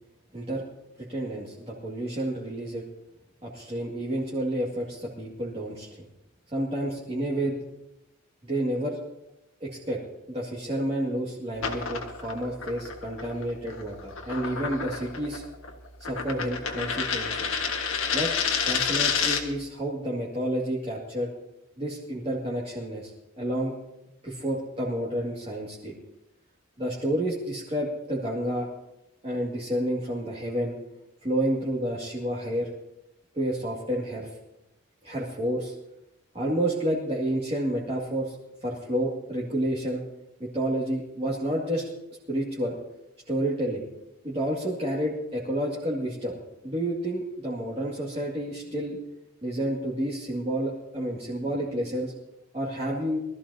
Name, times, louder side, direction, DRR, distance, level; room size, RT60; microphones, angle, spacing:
voice 1, 0.3-0.6 1.0-2.9 3.4-6.1 6.5-7.6 8.4-9.0 9.6-10.0 10.3-15.5 16.0-17.5 18.1-18.3 18.6-21.3 21.8-23.1 23.4-23.7 24.2-25.9 26.8-28.7 29.2-30.8 31.2-32.7 33.3-34.3 35.0-35.7 36.3-38.4 38.6-40.0 40.4-41.9 42.3-42.8 43.3-43.8 44.2-46.4 46.6-49.0 49.4-52.1 52.5-53.2, right 1 dB, 30° right, -6 dB, 2.2 m, -30 dB
sound 1, 11.5-19.6, left 6 dB, 75° left, 1.6 m, -30 dB
22.5 x 14.0 x 2.8 m, 0.91 s
head